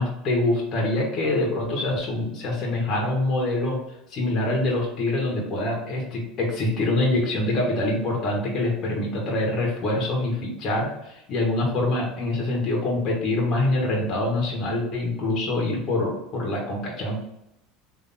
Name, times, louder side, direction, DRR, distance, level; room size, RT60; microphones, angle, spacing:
voice 1, 0.0-3.8 4.1-17.2, left 2 dB, 45° left, -1 dB, 1.6 m, -25 dB
3.6 x 3.3 x 4.2 m, 0.81 s
supercardioid pair, 115°, 0 cm